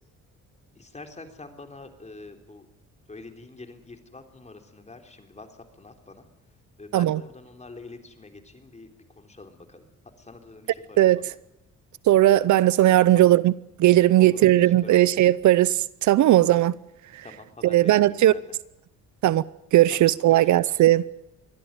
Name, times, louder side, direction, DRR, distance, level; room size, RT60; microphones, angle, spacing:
voice 1, 0.7-2.7 3.1-6.3 6.8-9.9 10.2-11.3 13.1-13.3 14.2-15.1 17.2-18.5 19.9-20.8, left 3 dB, 20° left, 3.7 m, -46 dB
voice 2, 12.1-13.5 13.8-16.8 17.6-18.3 19.2-19.4 19.7-21.0, right 14 dB, 70° right, 0.7 m, -18 dB
23.0 x 15.5 x 9.0 m
cardioid pair, 90°, 30 cm